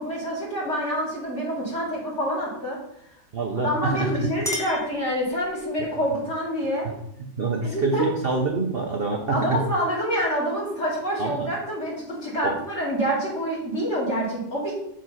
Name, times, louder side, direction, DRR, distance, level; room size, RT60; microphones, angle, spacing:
voice 1, 0.0-2.8 3.6-6.9 7.6-8.0 9.3-14.8, equal, 35° left, -5 dB, 2.9 m, -27 dB
voice 2, 3.3-4.3 7.4-9.6 11.2-11.5 12.4-12.6, right 4 dB, 80° right, 2 dB, 0.5 m, -26 dB
Chink clink, 4.4-5.7, left 2 dB, ahead, 0.9 m, -35 dB
5.9 x 4.8 x 5.7 m, 0.78 s
omnidirectional pair, 2.1 m